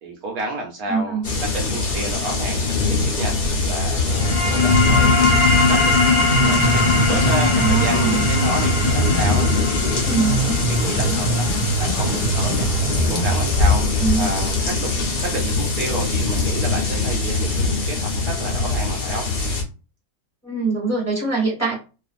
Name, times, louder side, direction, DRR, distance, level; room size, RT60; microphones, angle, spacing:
voice 1, 0.0-5.2 5.7-6.0 6.5-12.7 13.1-13.8 14.2-19.3, right 2 dB, 70° right, 0 dB, 0.9 m, -30 dB
voice 2, 0.9-1.2 7.6-8.2 10.1-10.4 14.0-14.3 20.4-21.7, right 4 dB, 10° left, -6 dB, 1.0 m, -23 dB
sound 1, 1.2-19.6, left 3 dB, 85° left, 0.4 m, -22 dB
sound 2, 4.0-15.1, left 3 dB, 40° left, 0.8 m, -22 dB
Piano, 5.9-13.9, right 4 dB, 15° right, 0.6 m, -24 dB
2.5 x 2.4 x 2.3 m, 0.32 s
omnidirectional pair, 1.8 m